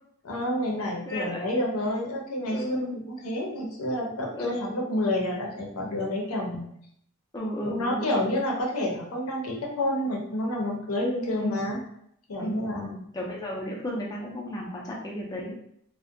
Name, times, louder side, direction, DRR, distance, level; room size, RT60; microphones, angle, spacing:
voice 1, 0.2-6.7 7.6-11.8 12.3-12.9, left 1 dB, 80° left, -1 dB, 0.6 m, -29 dB
voice 2, 0.8-1.5 2.5-3.0 4.3-4.8 7.3-8.3 11.4-11.8 12.4-15.6, equal, 15° left, -3 dB, 0.3 m, -34 dB
2.5 x 2.1 x 2.5 m, 0.72 s
head